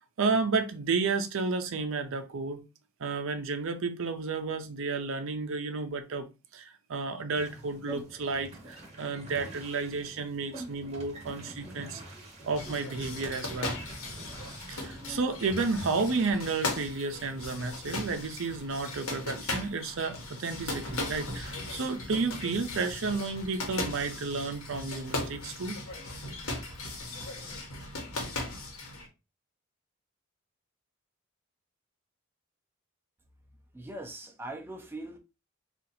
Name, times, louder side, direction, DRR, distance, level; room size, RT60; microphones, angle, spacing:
voice 1, 0.2-2.6 3.0-6.3 6.5-12.0 12.5-13.8 14.7-25.8, right 4 dB, 65° right, 0.5 m, -32 dB
sound 1, 7.3-16.2, right 1 dB, 30° right, 1.0 m, -46 dB
sound 2, 12.5-29.1, left 2 dB, 80° left, 1.1 m, -38 dB
voice 2, 33.7-35.2, right 1 dB, 10° right, 0.5 m, -41 dB
2.7 x 2.4 x 4.1 m
head